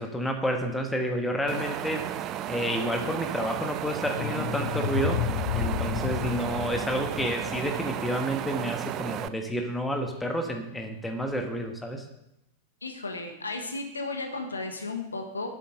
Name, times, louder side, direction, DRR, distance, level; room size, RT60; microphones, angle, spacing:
voice 1, 0.0-2.0 2.5-5.2 5.5-12.0, equal, 5° left, 4 dB, 1.5 m, -30 dB
Wind, 1.5-9.3, right 12 dB, 35° right, 0.5 m, -34 dB
sound 1, 3.7-8.8, left 10 dB, 50° left, 0.5 m, -32 dB
voice 2, 12.8-15.6, left 3 dB, 75° left, 4 dB, 1.5 m, -34 dB
8.5 x 7.5 x 6.6 m, 0.86 s
figure-of-eight pair, 90°, 0 cm